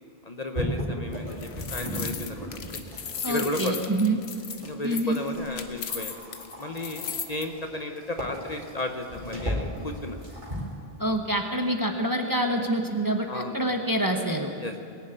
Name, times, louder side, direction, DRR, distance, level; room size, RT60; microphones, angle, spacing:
voice 1, 0.2-2.9 3.3-4.0 4.6-10.2 13.3-13.6 14.6-14.8, left 1 dB, 40° left, 5 dB, 1.0 m, -34 dB
sound 1, 0.5-3.8 4.3-10.8, equal, 50° right, 3.3 m, -36 dB
sound 2, 1.1-7.4, left 6 dB, 75° left, 1.2 m, -36 dB
voice 2, 3.2-4.2 4.8-5.2 11.0-14.5, right 1 dB, 20° right, 3 dB, 1.1 m, -26 dB
21.0 x 7.4 x 9.1 m, 2.5 s
omnidirectional pair, 1.1 m